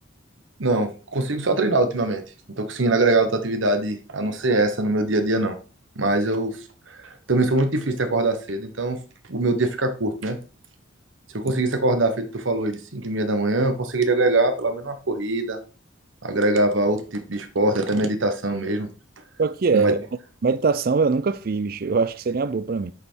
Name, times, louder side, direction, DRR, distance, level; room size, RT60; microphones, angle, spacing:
voice 1, 0.6-2.2 2.6-5.6 6.0-6.6 6.9-9.0 9.3-10.4 11.3-15.6 16.2-18.9 19.7-19.9, right 2 dB, 75° right, 1.1 m, -23 dB
voice 2, 19.4-20.1 20.4-22.9, right 4 dB, 50° right, 0.4 m, -22 dB
8.1 x 5.5 x 4.5 m
head